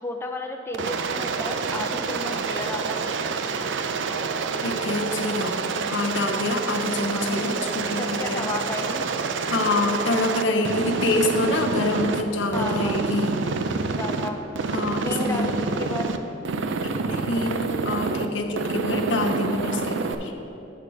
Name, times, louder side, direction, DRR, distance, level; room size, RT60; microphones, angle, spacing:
voice 1, 0.0-3.0 7.1-7.3 8.0-9.1 12.5-13.0 13.9-14.5 15.0-16.1, left 2 dB, 15° left, 2 dB, 0.4 m, -32 dB
Aircraft, 0.7-12.2 12.5-14.3 14.5-16.2 16.4-18.2 18.6-20.1, right 4 dB, 70° right, 0.4 m, -27 dB
voice 2, 4.6-5.6 5.9-8.5 9.5-13.4 14.7-15.5 16.8-20.3, left 2 dB, 70° left, 4 dB, 0.7 m, -26 dB
8.2 x 5.8 x 4.9 m, 2.8 s
head